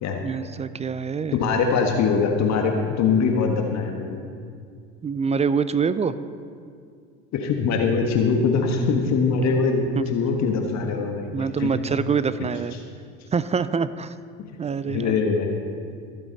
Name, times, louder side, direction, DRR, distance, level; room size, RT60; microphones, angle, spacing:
voice 1, 0.2-1.4 5.0-6.2 10.0-10.1 11.3-12.7 13.3-14.2 14.6-15.1, right 6 dB, 20° right, 14 dB, 0.4 m, -25 dB
voice 2, 1.3-4.2 7.3-11.3 11.6-11.7 14.9-15.5, left 5 dB, 50° left, 3 dB, 1.5 m, -22 dB
22.0 x 7.8 x 4.0 m, 2.2 s
hypercardioid pair, 80°, 35 cm